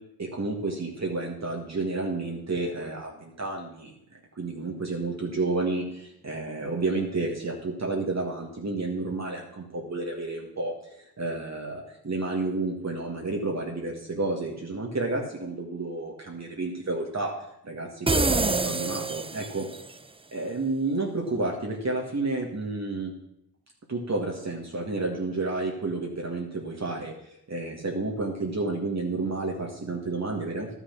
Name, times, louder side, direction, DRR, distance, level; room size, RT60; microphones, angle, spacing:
voice 1, 0.2-3.9 4.4-10.7 11.2-17.3 17.6-19.7 20.3-23.1 23.9-27.1 27.5-30.7, right 3 dB, 40° right, 0 dB, 1.9 m, -30 dB
sound 1, 18.1-19.9, right 3 dB, 15° right, 0.6 m, -26 dB
11.5 x 6.1 x 6.0 m, 0.79 s
supercardioid pair, 45°, 42 cm